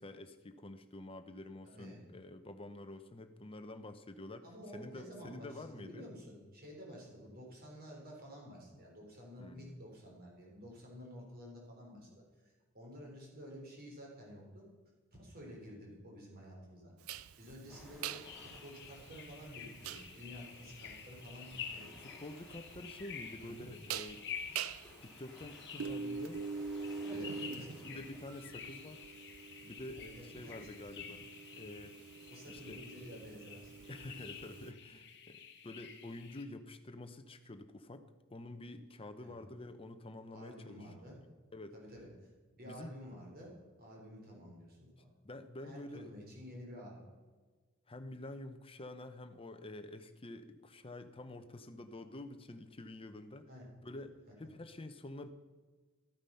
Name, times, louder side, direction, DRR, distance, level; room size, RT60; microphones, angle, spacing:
voice 1, 0.0-4.4 4.7-6.1 9.4-9.8 21.7-24.2 25.0-26.4 27.1-29.0 29.6-31.3 31.6-32.0 32.5-32.8 33.9-40.9 41.5-41.7 42.6-42.9 45.2-46.1 47.9-53.5 53.8-55.3, left 1 dB, 25° left, 8 dB, 0.8 m, -48 dB
voice 2, 1.6-2.0 4.4-14.6 15.1-21.9 23.4-23.7 27.0-28.0 29.9-31.1 32.3-33.7 39.2-39.4 40.3-41.2 41.7-42.3 42.5-45.1 45.6-47.0 53.5-53.7, equal, 45° right, -1 dB, 3.9 m, -51 dB
sound 1, 17.1-34.7, right 6 dB, 70° right, 0.5 m, -45 dB
sound 2, 17.7-29.0, left 1 dB, ahead, 3.7 m, -60 dB
sound 3, 18.2-36.4, left 7 dB, 55° left, 1.3 m, -50 dB
13.5 x 8.9 x 5.6 m, 1.4 s
head